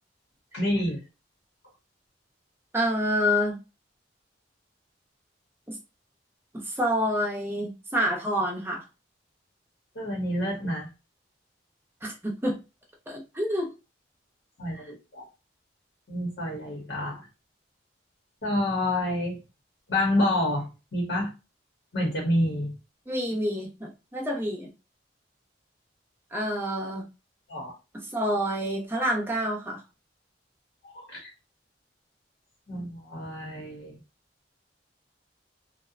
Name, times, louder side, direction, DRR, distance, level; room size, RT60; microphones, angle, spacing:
voice 1, 0.5-1.0 10.0-10.9 14.6-15.2 16.1-17.2 18.4-19.4 19.9-21.3 21.9-22.7 27.5-27.7 30.8-31.3 32.7-34.0, left 1 dB, 70° left, -2 dB, 0.9 m, -28 dB
voice 2, 2.7-3.6 5.7-5.8 6.7-8.8 12.0-12.6 13.1-13.7 23.1-24.7 26.3-27.0 27.9-29.8, equal, 15° right, 0 dB, 0.6 m, -28 dB
2.7 x 2.1 x 2.4 m, 0.29 s
head